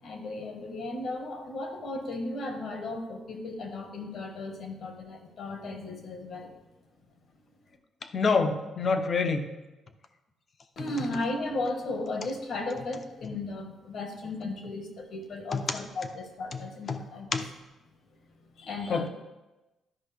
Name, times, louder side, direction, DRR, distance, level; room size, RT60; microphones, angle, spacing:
voice 1, 0.0-6.5 10.8-17.4 18.6-19.1, left 2 dB, 65° left, 4 dB, 1.5 m, -35 dB
voice 2, 8.1-9.5 15.5-15.8 16.9-17.0 17.3-17.5 18.9-19.1, left 4 dB, 45° left, 8 dB, 0.8 m, -26 dB
12.0 x 5.2 x 3.5 m, 1.0 s
cardioid pair, 100°, 0 cm